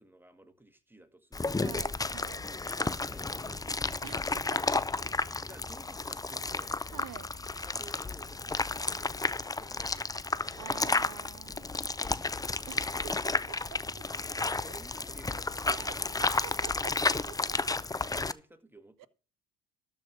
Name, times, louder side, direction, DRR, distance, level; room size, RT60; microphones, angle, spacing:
voice 1, 0.0-1.8 2.4-4.0 5.5-6.8 7.6-10.5 12.0-12.4 14.2-16.4 16.7-16.9 18.1-19.1, right 2 dB, 5° right, 1.8 m, -54 dB
sound 1, 1.3-18.3, left 3 dB, 10° left, 0.5 m, -32 dB
voice 2, 1.6-2.4 4.0-5.1 6.5-6.6 6.9-7.3 10.6-11.7 12.7-14.1 15.7-17.6 19.0-19.1, right 14 dB, 60° right, 0.8 m, -48 dB
12.5 x 4.9 x 7.2 m
supercardioid pair, 65°, 35 cm